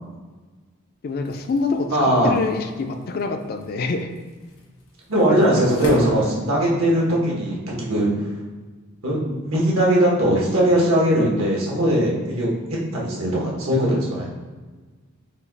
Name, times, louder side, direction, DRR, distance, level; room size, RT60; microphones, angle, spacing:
voice 1, 1.0-4.1 5.2-5.6, left 3 dB, 45° left, 6 dB, 0.4 m, -26 dB
sound 1, 1.1-7.1, left 1 dB, 80° left, 1.3 m, -37 dB
voice 2, 1.9-2.3 5.1-8.1 9.0-12.5 12.9-14.3, right 1 dB, 80° right, -4 dB, 1.4 m, -20 dB
5.2 x 2.4 x 4.0 m, 1.3 s
head